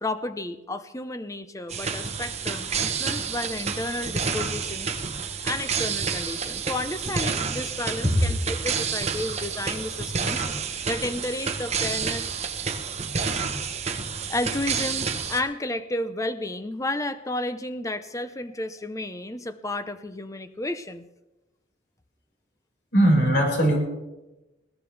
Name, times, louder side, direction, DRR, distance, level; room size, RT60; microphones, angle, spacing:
voice 1, 0.0-4.9 5.4-10.4 10.9-12.3 14.2-21.1, left 1 dB, 15° left, 11 dB, 0.7 m, -32 dB
sound 1, 1.7-15.4, right 5 dB, 35° right, 1.1 m, -29 dB
voice 2, 22.9-23.8, right 1 dB, 60° left, -1 dB, 5.4 m, -20 dB
21.5 x 17.0 x 3.4 m, 1.0 s
head